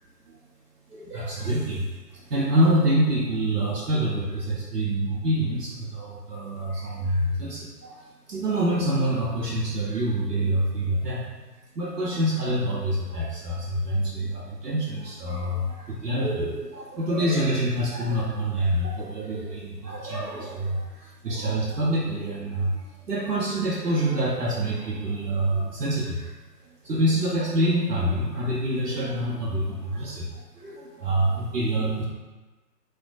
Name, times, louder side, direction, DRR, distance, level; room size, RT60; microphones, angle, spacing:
voice 1, 0.9-1.9 2.1-11.3 11.8-26.3 26.8-32.0, right 1 dB, 70° right, -4 dB, 0.7 m, -26 dB
4.3 x 2.2 x 2.4 m, 1.2 s
figure-of-eight pair, 145°, 49 cm